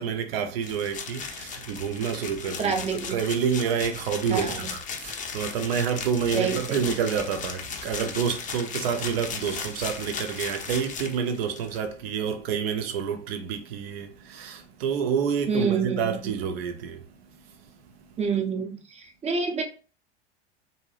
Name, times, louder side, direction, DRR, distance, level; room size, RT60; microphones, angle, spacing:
voice 1, 0.0-2.7 3.1-18.2, right 7 dB, 65° right, 0.7 m, -29 dB
sound 1, 0.6-11.8, left 6 dB, 25° left, 0.5 m, -36 dB
voice 2, 2.6-3.2 4.3-4.7 6.3-6.9 15.5-16.4 18.2-19.6, right 5 dB, 20° right, 0.6 m, -28 dB
2.7 x 2.2 x 3.1 m
hypercardioid pair, 85°, 32 cm